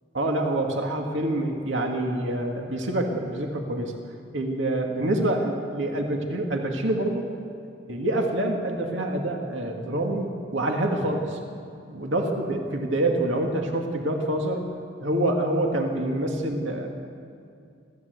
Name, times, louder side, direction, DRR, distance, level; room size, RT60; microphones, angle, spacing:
voice 1, 0.1-3.9 4.3-7.3 7.9-11.4 11.9-14.6 15.0-16.9, right 1 dB, 70° right, 2 dB, 2.2 m, -26 dB
28.0 x 13.5 x 8.1 m, 2.4 s
head